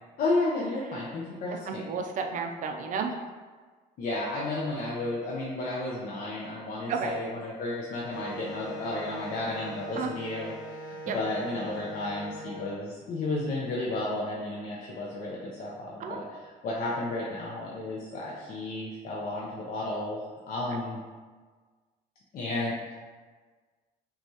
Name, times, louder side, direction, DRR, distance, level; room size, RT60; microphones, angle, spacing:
voice 1, 0.2-1.9 4.0-16.2 16.6-21.0 22.3-22.9, left 2 dB, 55° left, -4 dB, 0.6 m, -32 dB
voice 2, 1.5-3.1 6.9-7.1 10.0-10.1 11.1-11.2 16.0-16.2 20.7-20.8, right 6 dB, 50° right, 4 dB, 0.5 m, -32 dB
Wind instrument woodwind instrument, 8.1-12.7, equal, 90° left, 0.9 m, -42 dB
5.7 x 2.4 x 2.8 m, 1.5 s
cardioid pair, 110°, 17 cm